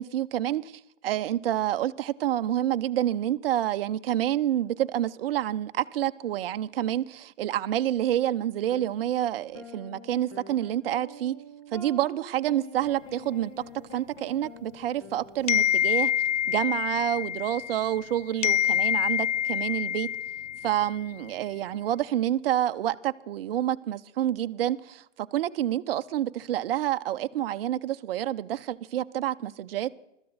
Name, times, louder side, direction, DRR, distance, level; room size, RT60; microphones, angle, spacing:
voice 1, 0.0-11.3 11.7-13.5 13.9-16.1 16.5-20.1 20.6-30.0, right 12 dB, 50° right, 0.8 m, -28 dB
sound 1, 8.7-8.9 9.5-15.9, left 1 dB, 30° left, 2.2 m, -46 dB
sound 2, 15.5-18.1 18.4-21.0, left 10 dB, 80° left, 0.5 m, -26 dB
24.0 x 14.0 x 4.0 m
hypercardioid pair, 140°, 37 cm